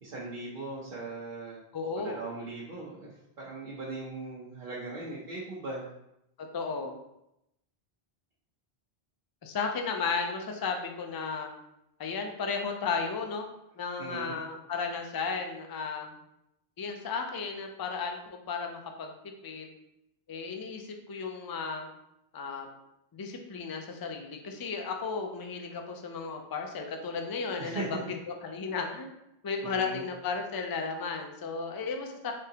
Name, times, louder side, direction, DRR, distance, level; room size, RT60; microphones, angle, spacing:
voice 1, 0.0-1.6 2.0-5.9 14.0-14.4 27.6-27.9 28.7-28.8 29.6-30.0, right 3 dB, 60° right, -7 dB, 0.9 m, -39 dB
voice 2, 1.7-2.2 6.4-7.0 9.4-11.5 12.0-13.4 13.8-16.1 16.8-19.1 19.4-19.7 20.3-21.9 22.3-22.7 23.1-28.0 28.4-29.1 29.4-32.3, left 5 dB, 40° left, 3 dB, 0.3 m, -34 dB
3.7 x 3.6 x 2.8 m, 0.83 s
omnidirectional pair, 1.1 m